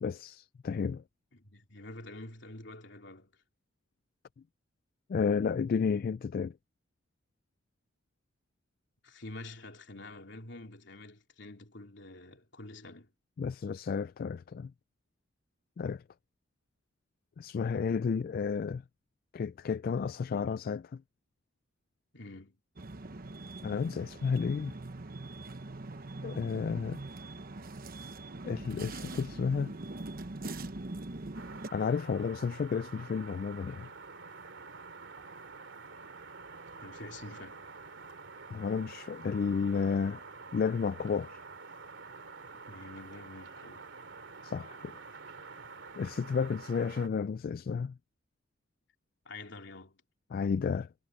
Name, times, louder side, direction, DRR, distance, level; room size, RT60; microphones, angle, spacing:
voice 1, 0.0-1.0 5.1-6.5 13.4-14.7 15.8-16.0 17.4-18.8 19.3-21.0 23.6-24.8 26.2-27.0 28.4-29.7 31.7-33.9 38.5-40.2 40.5-41.4 44.4-45.0 46.0-47.9 50.3-50.9, left 5 dB, 50° left, 0.3 m, -32 dB
voice 2, 1.3-3.3 9.0-13.1 22.1-22.6 36.8-37.6 42.5-43.9 49.2-50.0, left 2 dB, 65° left, 3.4 m, -47 dB
sound 1, 22.8-31.7, right 2 dB, 50° right, 1.1 m, -42 dB
sound 2, 31.3-47.1, right 4 dB, 75° right, 2.7 m, -48 dB
head